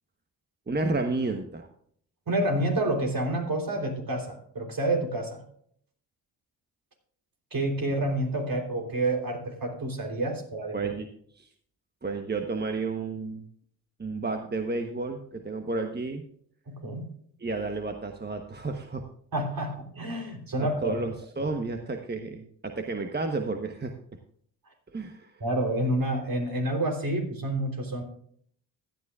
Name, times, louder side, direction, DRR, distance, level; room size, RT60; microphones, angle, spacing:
voice 1, 0.7-1.7 10.7-11.1 11.3-11.5 12.0-13.5 14.0-16.2 17.4-19.0 20.6-23.9 24.9-25.3, right 3 dB, 25° right, 5 dB, 1.1 m, -31 dB
voice 2, 2.3-5.4 7.5-10.9 16.7-17.1 19.3-21.0 21.4-21.5 25.4-28.0, right 1 dB, 50° right, 2 dB, 3.6 m, -29 dB
15.5 x 9.8 x 2.4 m, 0.63 s
supercardioid pair, 45°, 43 cm